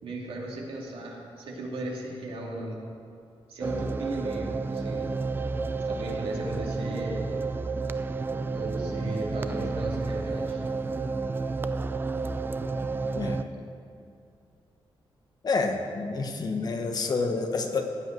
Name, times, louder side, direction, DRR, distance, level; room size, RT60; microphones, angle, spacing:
voice 1, 0.0-2.8 3.5-5.1 5.8-7.2 8.5-10.6, right 1 dB, 80° right, -2 dB, 2.5 m, -36 dB
sound 1, 3.6-13.4, right 3 dB, 20° right, 0.4 m, -31 dB
voice 2, 15.4-17.8, left 4 dB, 45° left, 4 dB, 1.0 m, -28 dB
15.0 x 5.3 x 9.2 m, 2.5 s
wide cardioid pair, 170°, 9 cm